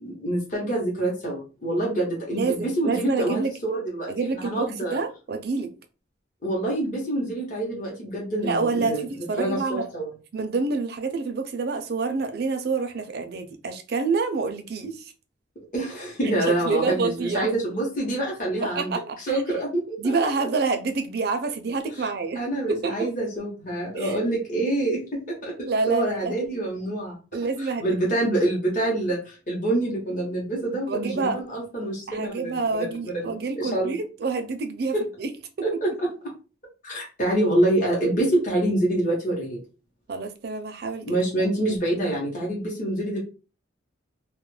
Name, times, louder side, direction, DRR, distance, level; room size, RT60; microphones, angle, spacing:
voice 1, 0.0-5.0 6.4-9.0 9.4-10.1 15.7-18.9 19.2-20.1 22.0-22.1 22.3-27.2 27.6-34.0 34.9-35.0 35.6-36.1 36.8-39.6 41.1-43.2, right 1 dB, 40° left, 0.8 m, -26 dB
voice 2, 2.3-3.5 4.1-5.7 8.4-9.9 10.3-15.1 16.5-17.5 18.6-19.4 20.0-22.4 22.7-23.1 23.9-24.2 25.6-26.3 27.3-27.9 30.9-31.4 32.1-35.3 35.6-35.7 40.1-41.0, right 4 dB, 55° right, 0.4 m, -27 dB
2.2 x 2.1 x 3.1 m
head